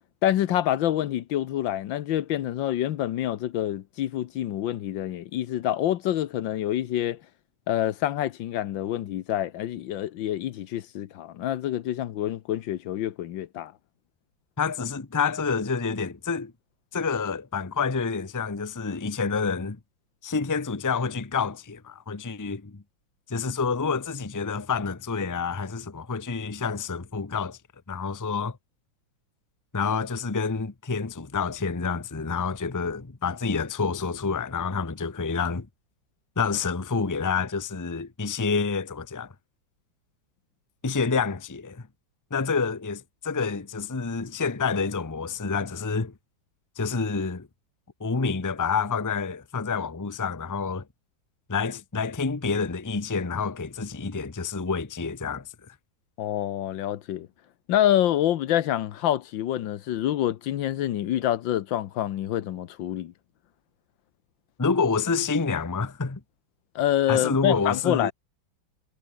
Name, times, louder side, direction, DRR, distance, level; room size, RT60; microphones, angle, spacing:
voice 1, 0.2-7.2 7.7-13.7 56.2-57.3 57.7-63.1 66.7-68.1, left 12 dB, 80° left, 1.6 m, -27 dB
voice 2, 14.6-16.5 16.9-19.8 20.2-22.8 23.3-27.6 27.9-28.6 29.7-35.7 36.4-39.3 40.8-41.8 42.3-46.1 46.8-47.5 48.0-50.8 51.5-55.7 64.6-66.2 67.1-68.1, left 5 dB, 15° left, 0.7 m, -28 dB
omnidirectional pair, 2.1 m